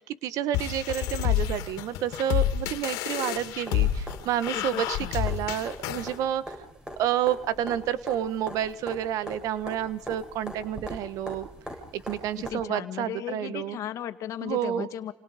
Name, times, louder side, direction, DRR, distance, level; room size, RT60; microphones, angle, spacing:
voice 1, 0.0-6.5 7.0-11.5 11.9-13.8 14.4-14.9, right 10 dB, 70° right, 14 dB, 1.4 m, -30 dB
sound 1, 0.5-6.1, left 12 dB, 75° left, 2.7 m, -29 dB
sound 2, 3.3-12.5 14.5-14.6, equal, 10° right, 7.6 m, -42 dB
voice 2, 4.5-5.2 12.5-15.1, left 11 dB, 60° left, 9 dB, 2.1 m, -36 dB
28.5 x 28.5 x 5.2 m, 0.73 s
supercardioid pair, 90°, 6 cm